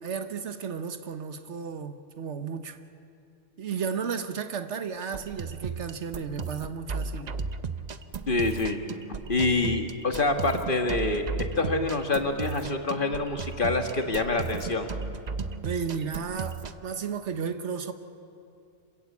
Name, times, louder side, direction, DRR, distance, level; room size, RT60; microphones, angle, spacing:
voice 1, 0.0-2.8 3.6-7.3 15.6-17.9, right 6 dB, 85° right, 1.4 m, -33 dB
sound 1, 5.0-16.8, right 5 dB, 45° right, 0.7 m, -35 dB
voice 2, 8.3-8.8 9.3-11.3 11.5-14.9, left 3 dB, 50° left, 1.7 m, -26 dB
27.0 x 15.5 x 8.4 m
omnidirectional pair, 1.2 m